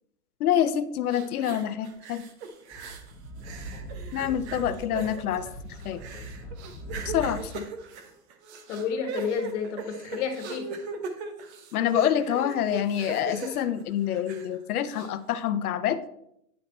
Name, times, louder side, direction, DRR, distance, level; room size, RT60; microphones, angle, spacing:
voice 1, 0.4-2.2 4.1-5.5 5.8-6.0 7.0-7.7 11.7-16.0, left 10 dB, 65° left, 13 dB, 0.7 m, -27 dB
sound 1, 1.1-3.1 3.4-14.6 14.9-15.1, right 4 dB, 45° right, 1.1 m, -39 dB
Speech / Wind, 2.7-7.6, right 1 dB, 15° left, 1.4 m, -40 dB
voice 2, 8.7-10.8, left 6 dB, 45° left, 6 dB, 1.5 m, -31 dB
9.6 x 4.2 x 4.3 m, 0.77 s
hypercardioid pair, 150°, 48 cm